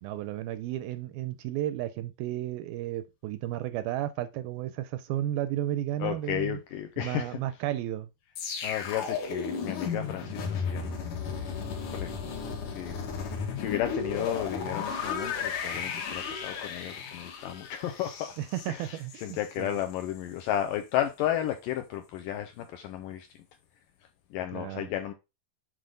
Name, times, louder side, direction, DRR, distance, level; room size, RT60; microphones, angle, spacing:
voice 1, 0.0-6.6 7.0-8.1 18.4-19.8 24.5-24.9, right 13 dB, 80° right, 2.2 m, -33 dB
voice 2, 6.0-7.4 8.6-11.0 11.3-11.5 11.9-12.1 12.7-13.0 13.6-18.4 18.7-23.3 24.3-25.1, left 11 dB, 80° left, 2.0 m, -33 dB
sound 1, 8.4-19.5 19.8-20.0, left 6 dB, 65° left, 2.5 m, -34 dB
7.7 x 4.9 x 3.8 m
omnidirectional pair, 4.5 m